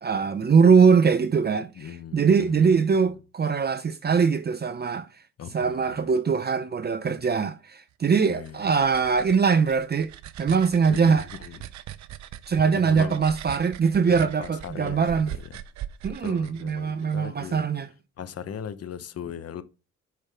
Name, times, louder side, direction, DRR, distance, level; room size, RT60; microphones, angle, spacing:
voice 1, 0.0-5.1 5.5-10.1 10.4-11.3 12.5-15.3 16.0-17.9, right 5 dB, 35° right, 0.7 m, -22 dB
voice 2, 1.8-2.8 5.4-6.1 8.3-8.6 10.9-11.6 12.7-13.1 14.0-15.2 16.2-17.6 18.2-19.6, left 8 dB, 55° left, 1.0 m, -38 dB
sound 1, 8.2-17.2, right 11 dB, 65° right, 0.7 m, -41 dB
8.3 x 5.7 x 3.6 m
cardioid pair, 90°, 30 cm